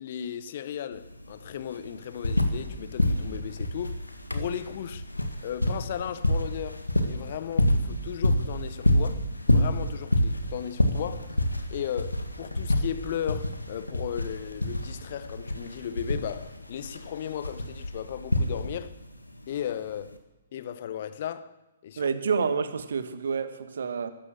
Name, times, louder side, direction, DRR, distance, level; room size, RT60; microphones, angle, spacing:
voice 1, 0.0-4.0 4.3-5.1 5.4-11.3 11.7-18.9 19.5-20.2 20.5-21.5 21.8-22.1, left 9 dB, 45° left, 1.0 m, -36 dB
sound 1, 0.9-1.0 1.3-2.7 3.0-18.9 20.0-20.1, left 1 dB, 85° left, 1.8 m, -27 dB
voice 2, 22.0-24.1, right 5 dB, 60° right, 1.4 m, -28 dB
14.5 x 13.0 x 7.7 m
figure-of-eight pair, 125°, 0 cm